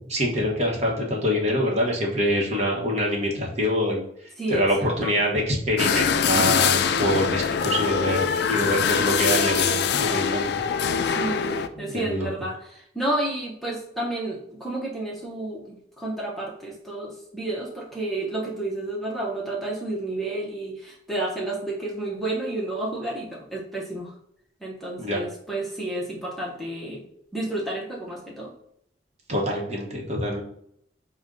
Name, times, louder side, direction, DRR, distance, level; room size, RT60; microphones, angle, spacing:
voice 1, 0.1-4.0 4.5-10.6 11.8-12.3 25.0-25.2 29.3-30.4, equal, 40° right, -1 dB, 1.0 m, -25 dB
voice 2, 4.4-5.1 11.0-24.2 24.6-27.0 27.3-28.5, right 2 dB, ahead, -3 dB, 0.7 m, -31 dB
sound 1, 5.8-11.7, left 7 dB, 65° left, 0.3 m, -23 dB
5.0 x 2.2 x 3.7 m, 0.71 s
head